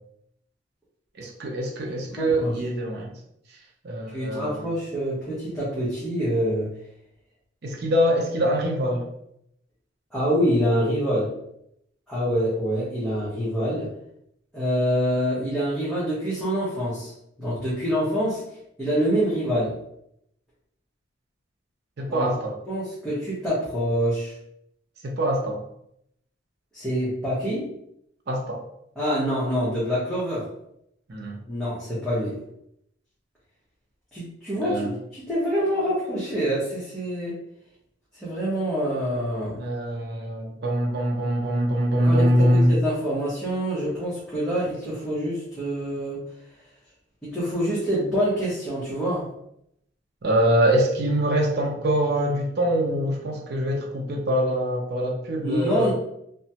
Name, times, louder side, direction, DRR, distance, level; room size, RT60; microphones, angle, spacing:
voice 1, 1.2-3.1 3.8-4.7 7.6-9.0 22.0-22.6 25.0-25.6 28.3-28.6 31.1-31.4 34.6-34.9 39.6-42.8 50.2-55.9, equal, 60° right, 1 dB, 0.6 m, -23 dB
voice 2, 2.2-2.5 4.1-6.7 10.1-11.3 12.1-13.9 14.5-17.1 17.4-18.4 18.8-19.7 22.1-22.2 22.7-24.3 26.7-27.6 29.0-30.5 31.5-32.3 34.1-34.9 35.3-37.4 38.2-39.6 42.0-42.3 42.5-46.2 47.2-49.2 55.4-55.9, equal, 5° left, -11 dB, 0.9 m, -26 dB
2.9 x 2.2 x 2.8 m, 0.76 s
head